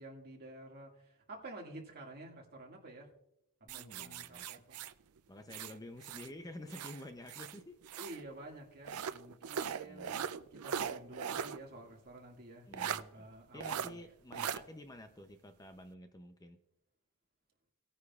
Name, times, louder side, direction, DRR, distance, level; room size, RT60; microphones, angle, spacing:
voice 1, 0.0-3.1 3.7-4.8 8.0-14.0 14.3-14.4, right 1 dB, 45° right, 0 dB, 2.0 m, -50 dB
voice 2, 3.6-4.6 5.3-7.8 9.8-10.2 12.7-16.6, left 1 dB, 15° left, 8 dB, 0.5 m, -50 dB
sound 1, 3.7-6.3 6.7-8.2 8.8-11.6 11.9-12.0 12.7-13.0 13.6-13.9 14.3-14.6, right 8 dB, 85° right, 0.5 m, -40 dB
19.0 x 9.6 x 2.4 m, 0.82 s
head